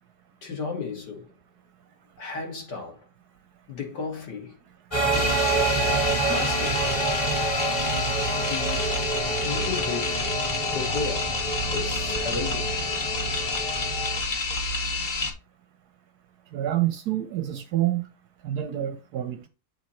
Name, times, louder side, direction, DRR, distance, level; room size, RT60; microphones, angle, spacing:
voice 1, 0.4-1.3 2.2-3.0 3.7-4.6 5.0-5.4 6.3-7.1 8.5-8.9 9.4-10.2 10.7-12.8, left 5 dB, 65° left, 2.4 m, -34 dB
sound 1, 4.9-14.2, right 2 dB, 15° left, 1.4 m, -28 dB
sound 2, 5.1-15.3, left 3 dB, 40° left, 0.7 m, -29 dB
voice 2, 16.5-18.1 18.4-19.5, right 13 dB, 70° right, 1.0 m, -27 dB
8.0 x 3.0 x 4.3 m
omnidirectional pair, 2.0 m